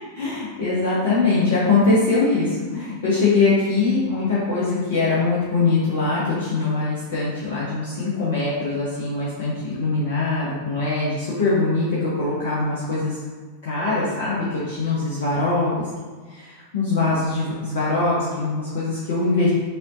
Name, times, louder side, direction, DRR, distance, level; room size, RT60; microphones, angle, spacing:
voice 1, 0.2-13.2 13.6-15.8 16.3-19.5, left 3 dB, 55° left, -8 dB, 1.0 m, -22 dB
5.4 x 2.9 x 2.6 m, 1.5 s
figure-of-eight pair, 90°, 0 cm